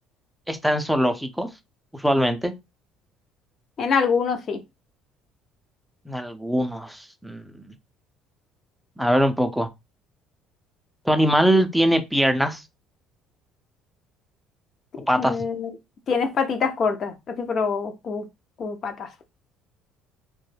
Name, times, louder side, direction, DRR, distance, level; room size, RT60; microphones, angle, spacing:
voice 1, 0.5-1.5 1.9-2.5 6.1-7.7 9.0-9.7 11.1-12.6 15.1-15.4, equal, ahead, 0.5 m, -22 dB
voice 2, 3.8-4.6 15.0-15.7 16.1-18.2 18.6-19.1, left 5 dB, 50° left, 0.6 m, -25 dB
2.2 x 2.0 x 3.2 m
supercardioid pair, 85°, 0 cm